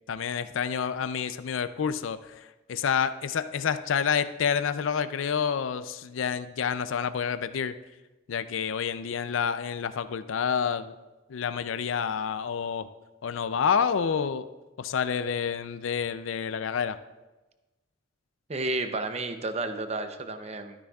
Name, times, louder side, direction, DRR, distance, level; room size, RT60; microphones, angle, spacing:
voice 1, 0.1-7.8 8.3-10.9 11.3-12.9 13.2-14.5 14.8-17.0, left 7 dB, 85° left, 12 dB, 0.4 m, -28 dB
voice 2, 18.5-20.8, right 2 dB, 35° right, 8 dB, 0.7 m, -32 dB
12.5 x 10.0 x 2.4 m, 1.1 s
head